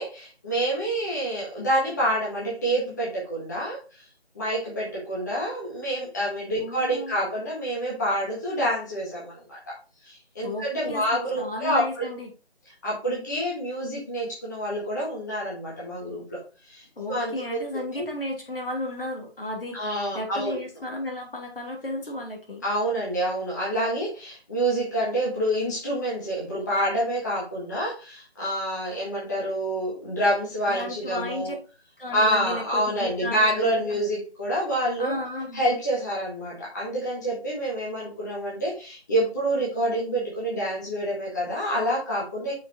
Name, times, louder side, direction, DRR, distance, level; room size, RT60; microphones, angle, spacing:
voice 1, 0.0-4.0 4.3-9.6 10.0-12.1 12.8-16.4 16.6-17.6 17.9-18.1 19.7-20.6 22.6-31.5 32.1-35.1 35.5-42.5, right 1 dB, 15° left, -6 dB, 1.5 m, -27 dB
voice 2, 6.6-7.2 10.4-12.3 17.0-22.6 30.7-31.6 32.0-34.0 35.0-35.6, left 1 dB, 60° left, 1 dB, 2.6 m, -34 dB
6.1 x 4.8 x 4.3 m, 0.34 s
figure-of-eight pair, 170°, 32 cm